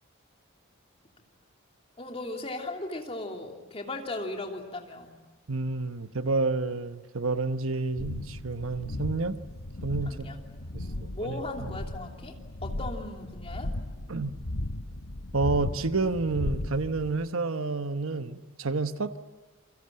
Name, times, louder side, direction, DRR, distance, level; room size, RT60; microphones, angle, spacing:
voice 1, 2.0-5.2 10.1-10.4 10.6-13.7, left 2 dB, 30° left, 2 dB, 3.1 m, -37 dB
voice 2, 5.5-9.4 9.8-10.3 10.7-11.7 14.1-14.3 15.3-19.2, right 3 dB, 75° right, 10 dB, 1.1 m, -29 dB
sound 1, 8.0-17.1, left 1 dB, 70° left, 1.3 m, -36 dB
28.0 x 25.0 x 7.7 m, 1.2 s
head